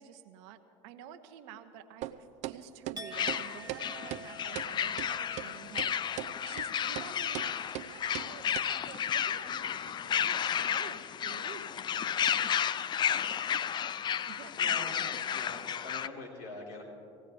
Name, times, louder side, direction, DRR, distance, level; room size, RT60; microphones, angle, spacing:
voice 1, 0.0-6.1 6.4-12.1 14.3-15.4, right 8 dB, 65° right, 9 dB, 1.0 m, -50 dB
sound 1, 2.0-2.1 2.4-2.6 2.9-3.0 3.3-3.4 3.7-3.8 4.1-4.2 4.6-4.7 5.0-5.1 5.4-5.5 5.8-5.9 6.2-6.3 6.6-6.7 7.0-7.1 7.3-7.5 7.7-7.9 8.1-8.3 8.5-8.6, right 15 dB, 45° right, 0.6 m, -37 dB
Chink clink, 3.0-8.9 9.2-9.6, equal, 25° right, 1.3 m, -51 dB
sound 2, 3.1-16.1, left 9 dB, 30° left, 0.4 m, -32 dB
voice 2, 14.6-14.9 15.3-16.8, left 2 dB, 65° left, -4 dB, 4.4 m, -44 dB
18.5 x 17.5 x 3.5 m, 2.8 s
hypercardioid pair, 80°, 16 cm